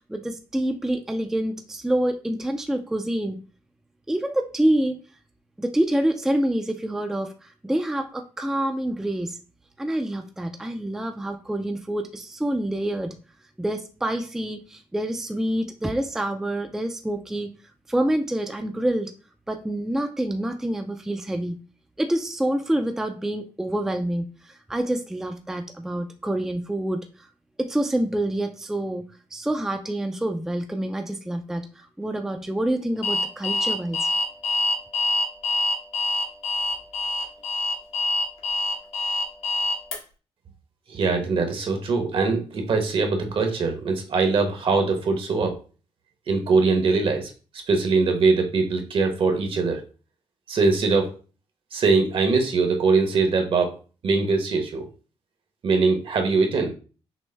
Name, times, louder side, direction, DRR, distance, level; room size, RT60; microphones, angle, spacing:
voice 1, 0.1-3.4 4.1-5.0 5.6-9.4 9.8-13.2 13.6-17.5 17.9-19.1 19.5-21.6 22.0-27.3 27.6-29.0 29.3-34.1, right 1 dB, 5° right, 5 dB, 0.4 m, -27 dB
Alarm, 33.0-40.0, left 2 dB, 85° left, 1.4 m, -25 dB
voice 2, 40.9-45.6 46.3-49.8 50.5-51.1 51.7-53.8 54.0-54.9 55.6-56.7, right 4 dB, 60° right, 5 dB, 1.0 m, -22 dB
6.1 x 2.1 x 3.3 m, 0.35 s
wide cardioid pair, 135°, 11 cm